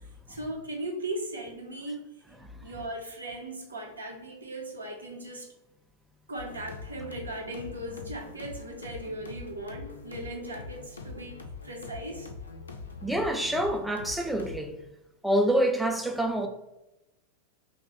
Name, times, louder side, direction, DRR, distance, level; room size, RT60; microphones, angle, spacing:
voice 1, 0.3-2.0 2.6-5.5 6.3-12.3, right 1 dB, 75° right, 0.6 m, -38 dB
sound 1, 6.4-14.6, left 4 dB, 75° left, 0.4 m, -43 dB
voice 2, 13.0-14.7 15.2-16.5, right 1 dB, ahead, 0.4 m, -26 dB
2.8 x 2.2 x 3.1 m
figure-of-eight pair, 90°, 0 cm